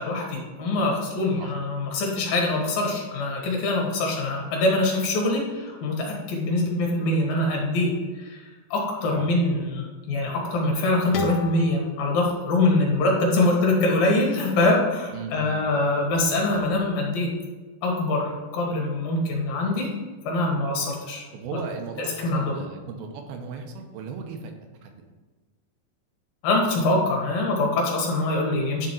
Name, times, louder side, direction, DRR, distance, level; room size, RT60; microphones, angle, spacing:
voice 1, 0.0-8.4 8.7-17.3 17.8-19.9 20.2-21.2 21.5-21.6 22.2-22.5 26.4-28.9, left 2 dB, 70° left, -1 dB, 3.3 m, -24 dB
sound 1, 11.1-14.0, left 4 dB, 85° left, 2.7 m, -35 dB
voice 2, 15.1-15.7 21.3-24.5 24.8-24.9, right 5 dB, 85° right, 4 dB, 2.8 m, -36 dB
10.5 x 3.8 x 4.6 m, 1.3 s
omnidirectional pair, 4.2 m